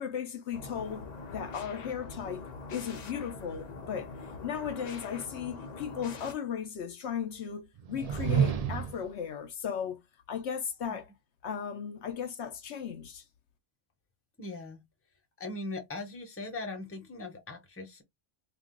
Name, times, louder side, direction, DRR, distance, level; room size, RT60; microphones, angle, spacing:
voice 1, 0.0-4.1 4.4-10.0 10.3-11.1 11.4-13.2, left 7 dB, 70° left, 0.9 m, -36 dB
sound 1, 0.5-6.3, left 3 dB, 50° left, 0.5 m, -43 dB
sound 2, 7.8-9.1, right 8 dB, 65° right, 0.3 m, -29 dB
voice 2, 14.4-14.8 15.4-18.0, left 2 dB, 15° left, 0.8 m, -40 dB
2.4 x 2.3 x 3.6 m
omnidirectional pair, 1.2 m